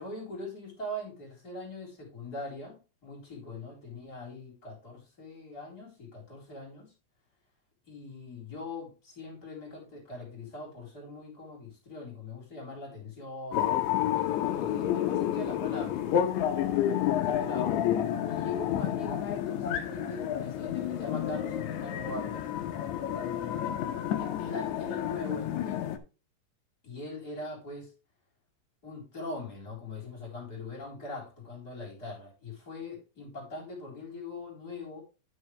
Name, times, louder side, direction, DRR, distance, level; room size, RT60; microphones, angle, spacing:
voice 1, 0.0-6.9 7.9-16.2 16.9-17.7 18.3-22.5 23.2-26.0 26.8-27.9 28.8-35.0, left 2 dB, 25° left, 4.1 m, -41 dB
sound 1, 13.5-26.0, left 10 dB, 85° left, 1.6 m, -30 dB
10.0 x 6.6 x 3.3 m
omnidirectional pair, 4.6 m